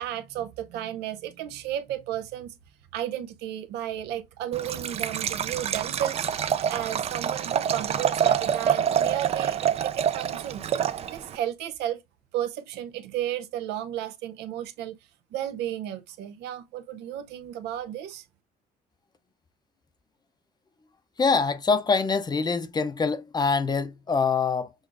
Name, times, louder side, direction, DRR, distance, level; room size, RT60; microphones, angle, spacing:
voice 1, 0.0-2.5 2.9-10.7 11.1-12.0 12.3-15.0 15.3-18.2, right 11 dB, 85° right, 0.6 m, -33 dB
Liquid, 4.5-11.4, right 9 dB, 40° right, 0.4 m, -27 dB
voice 2, 21.2-24.7, left 4 dB, 25° left, 0.6 m, -24 dB
6.3 x 2.5 x 2.5 m
cardioid pair, 110°, 17 cm